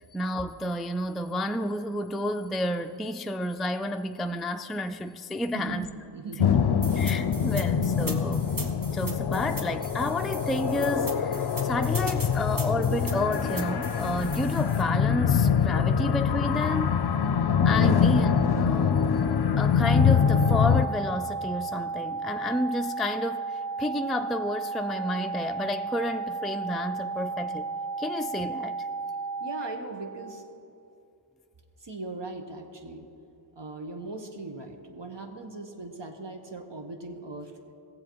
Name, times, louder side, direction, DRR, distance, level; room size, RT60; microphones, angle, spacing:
voice 1, 0.0-5.9 7.0-8.5 8.9-17.0 17.6-19.1 19.6-28.9, left 1 dB, ahead, 0.3 m, -31 dB
voice 2, 5.5-5.9 6.1-7.1 29.4-30.5 31.8-33.1 33.6-37.5, right 3 dB, 60° right, 1.2 m, -39 dB
sound 1, 6.4-20.9, left 7 dB, 55° left, 0.5 m, -24 dB
sound 2, 6.8-14.8, right 2 dB, 45° right, 1.3 m, -40 dB
sound 3, 19.8-29.8, right 4 dB, 80° right, 3.1 m, -33 dB
18.0 x 7.5 x 4.6 m
wide cardioid pair, 40°, 47 cm